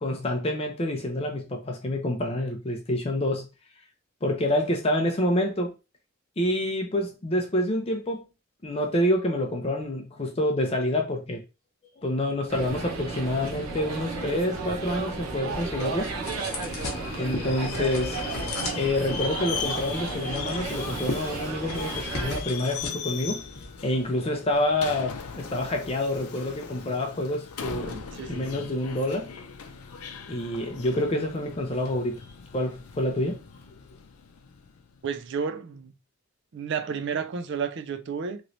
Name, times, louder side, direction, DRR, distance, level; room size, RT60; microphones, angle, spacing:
voice 1, 0.0-3.5 4.2-5.7 6.4-8.2 8.6-11.4 12.0-16.1 17.2-18.2 18.8-23.4 23.8-27.9 28.3-29.3 30.3-32.2 32.5-33.4, left 1 dB, 25° left, 0.5 m, -27 dB
sound 1, 12.5-22.4, right 3 dB, 80° right, 0.7 m, -33 dB
sound 2, 14.5-24.6, left 2 dB, 50° left, 0.9 m, -39 dB
Subway metro underground, 16.6-35.1, left 6 dB, 85° left, 0.5 m, -39 dB
voice 2, 27.8-28.6 35.0-35.9 36.5-38.4, right 6 dB, 55° right, 0.4 m, -32 dB
3.0 x 3.0 x 2.6 m
head